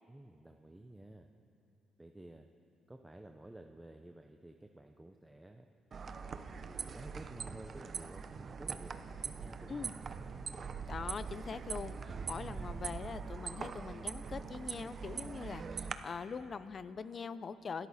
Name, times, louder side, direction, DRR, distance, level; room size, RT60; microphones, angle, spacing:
voice 1, 0.1-1.3 2.0-2.5 2.9-5.7 6.2-10.1, right 1 dB, 10° right, 4 dB, 0.7 m, -52 dB
sound 1, 5.9-15.9, right 5 dB, 45° right, 0.8 m, -42 dB
voice 2, 10.9-17.9, left 5 dB, 45° left, 14 dB, 0.6 m, -43 dB
25.0 x 13.0 x 4.3 m, 2.8 s
cardioid pair, 90°, 0 cm